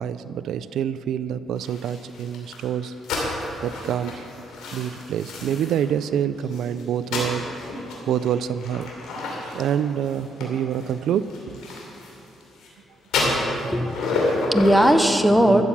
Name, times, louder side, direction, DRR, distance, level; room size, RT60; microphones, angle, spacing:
voice 1, 0.0-2.9 3.6-4.3 4.7-7.5 8.1-8.9 9.5-11.3, right 9 dB, 75° right, 14 dB, 0.3 m, -26 dB
sound 1, 1.5-5.9 6.4-12.7 13.0-14.9, left 2 dB, 85° left, 2.9 m, -30 dB
voice 2, 13.6-15.6, equal, ahead, 7 dB, 0.8 m, -19 dB
13.0 x 7.3 x 7.2 m, 3.0 s
cardioid pair, 90°, 0 cm